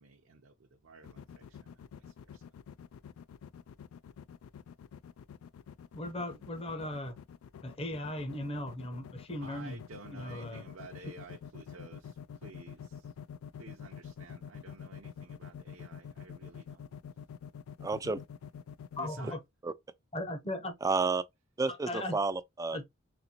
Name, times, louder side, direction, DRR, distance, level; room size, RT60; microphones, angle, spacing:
voice 1, 0.0-2.4 9.4-13.1 13.6-17.0 18.9-19.4, right 4 dB, 70° right, 0.6 m, -52 dB
sound 1, 1.0-19.1, left 7 dB, 85° left, 0.3 m, -47 dB
voice 2, 5.9-7.1 7.6-9.8 10.1-10.6 19.0-19.4 20.1-20.7 21.9-22.2 22.7-22.8, left 1 dB, 30° left, 0.8 m, -37 dB
voice 3, 17.8-18.2 19.6-19.7 20.8-21.2 21.6-22.9, right 4 dB, 15° right, 0.3 m, -31 dB
4.1 x 2.5 x 2.8 m
head